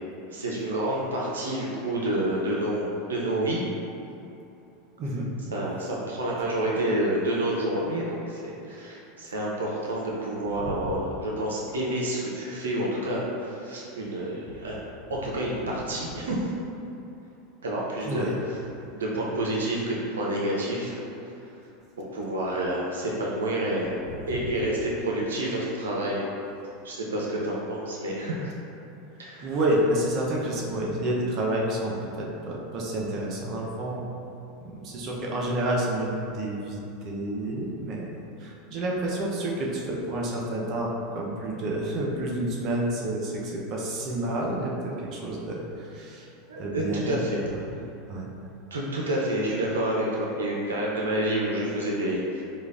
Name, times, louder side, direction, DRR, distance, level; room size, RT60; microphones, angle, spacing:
voice 1, 0.3-3.7 5.5-14.8 15.1-16.4 17.6-18.6 18.9-21.0 22.1-23.9 24.3-26.2 26.8-28.5 29.2-29.5 46.5-47.4 48.7-52.4, right 1 dB, 90° right, -4 dB, 0.5 m, -29 dB
voice 2, 29.4-34.0 34.6-38.1 38.4-46.3 46.5-47.2 48.1-48.3, right 1 dB, 45° right, -2 dB, 0.6 m, -29 dB
4.9 x 2.3 x 2.5 m, 2.8 s
hypercardioid pair, 100°, 0 cm